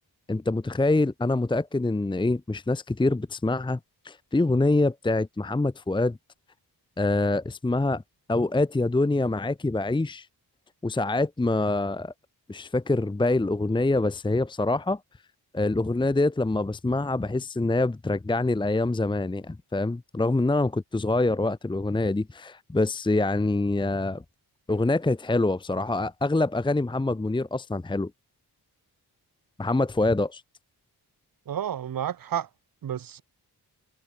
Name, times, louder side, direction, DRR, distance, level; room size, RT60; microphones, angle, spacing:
voice 1, 0.3-6.2 7.0-8.0 8.3-10.3 10.8-12.1 12.5-15.0 15.5-24.2 24.7-28.1 29.6-30.4, left 2 dB, 10° left, 0.9 m, -25 dB
voice 2, 31.5-32.5 32.8-33.2, right 9 dB, 55° right, 1.2 m, -30 dB
wide cardioid pair, 175°, 40 cm